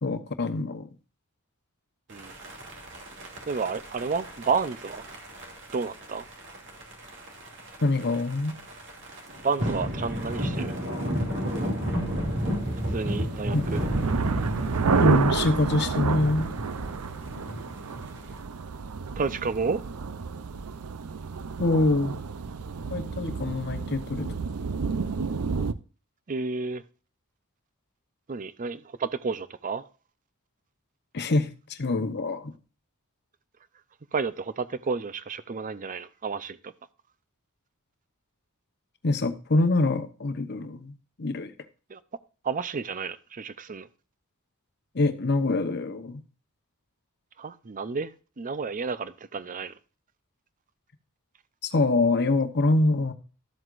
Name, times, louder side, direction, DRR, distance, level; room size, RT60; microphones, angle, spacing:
voice 1, 0.0-0.9 7.8-8.6 13.5-13.7 15.0-16.5 21.6-22.2 22.9-24.3 31.1-32.5 39.0-41.5 44.9-46.2 51.6-53.1, left 2 dB, 50° left, 1.0 m, -25 dB
sound 1, 2.1-18.4, equal, 55° right, 2.6 m, -33 dB
voice 2, 3.5-5.0 5.7-6.3 9.4-10.8 12.9-13.8 19.2-19.8 26.3-26.8 28.3-29.8 34.1-36.7 41.9-42.0 42.4-43.9 47.4-48.1 48.4-49.7, right 5 dB, 35° right, 0.6 m, -31 dB
sound 2, 12.9-25.7, right 5 dB, 85° right, 0.6 m, -30 dB
13.0 x 7.8 x 2.5 m
head